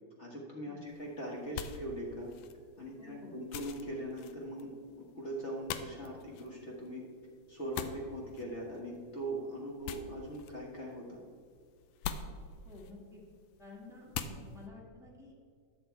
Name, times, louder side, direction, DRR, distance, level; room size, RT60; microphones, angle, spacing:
voice 1, 0.2-2.3 2.8-4.7 5.1-7.0 7.5-11.2, right 1 dB, 40° left, -2 dB, 0.9 m, -41 dB
sound 1, 0.9-14.7, left 7 dB, 90° left, 1.4 m, -46 dB
voice 2, 3.0-3.3 12.6-13.2 13.6-15.4, left 3 dB, ahead, -4 dB, 0.6 m, -52 dB
11.0 x 7.1 x 4.5 m, 2.1 s
omnidirectional pair, 3.5 m